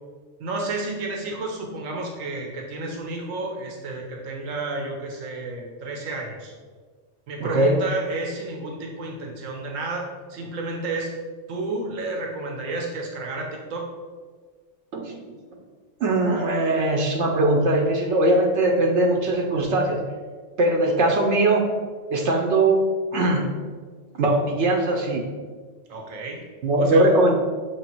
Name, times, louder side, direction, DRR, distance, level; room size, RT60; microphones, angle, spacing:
voice 1, 0.4-6.5 7.3-11.1 11.5-13.9 25.9-26.5 26.8-27.2, right 2 dB, 85° right, 0 dB, 1.2 m, -31 dB
voice 2, 7.4-7.8 14.9-15.2 16.0-20.0 20.6-21.7 22.1-23.6 24.2-25.3 26.6-27.3, right 2 dB, 65° right, 1 dB, 1.0 m, -20 dB
7.0 x 3.3 x 4.4 m, 1.5 s
omnidirectional pair, 1.3 m